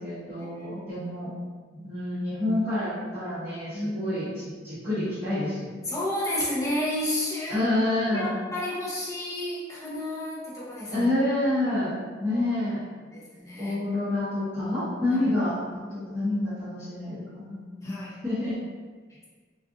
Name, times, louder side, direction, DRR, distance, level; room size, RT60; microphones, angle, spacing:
voice 1, 0.0-1.3 1.7-5.8 7.5-8.3 10.9-12.8 13.6-17.6 18.2-18.6, left 1 dB, 10° right, -15 dB, 0.9 m, -28 dB
voice 2, 3.7-4.2 5.9-7.6 8.1-11.1 12.2-12.4 13.1-13.8 15.1-15.3 17.8-18.1, left 1 dB, 15° left, -6 dB, 0.6 m, -31 dB
2.4 x 2.4 x 3.7 m, 1.5 s
head